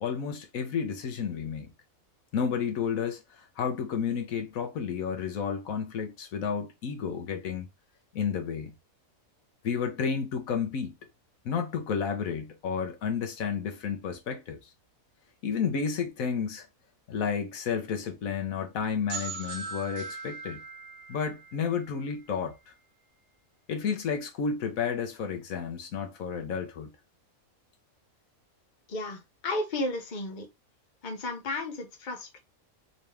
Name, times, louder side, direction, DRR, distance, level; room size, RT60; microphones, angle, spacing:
voice 1, 0.0-1.7 2.3-7.7 8.1-8.7 9.6-10.9 11.4-14.6 15.4-16.7 17.1-20.6 21.1-22.6 23.7-26.9, left 6 dB, 80° left, 1.3 m, -31 dB
sound 1, 19.1-22.7, right 4 dB, 60° right, 1.2 m, -40 dB
voice 2, 28.9-30.5 31.0-32.4, left 2 dB, 40° left, 1.0 m, -33 dB
4.0 x 3.0 x 3.3 m
omnidirectional pair, 1.4 m